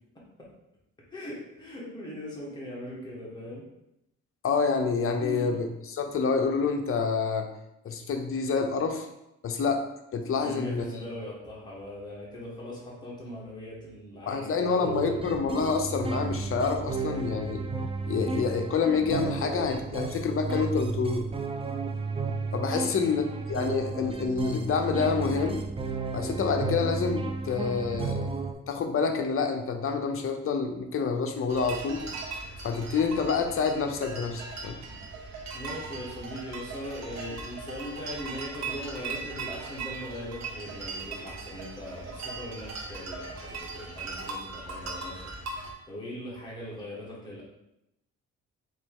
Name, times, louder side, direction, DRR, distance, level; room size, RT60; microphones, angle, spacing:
voice 1, 1.1-3.6 5.2-5.6 10.4-15.2 22.7-23.2 35.1-35.3 35.5-47.4, left 1 dB, 15° left, -6 dB, 1.6 m, -40 dB
voice 2, 4.4-7.5 7.8-9.1 9.4-10.8 14.3-17.6 18.1-21.3 22.5-25.6 26.1-28.3 28.7-32.0 32.6-34.8, left 5 dB, 45° left, 5 dB, 0.7 m, -28 dB
sound 1, 14.8-28.5, right 4 dB, 20° right, 0.4 m, -33 dB
sound 2, 31.5-45.7, right 3 dB, 60° right, 0.9 m, -39 dB
4.2 x 3.0 x 3.6 m, 0.85 s
cardioid pair, 90°, 30 cm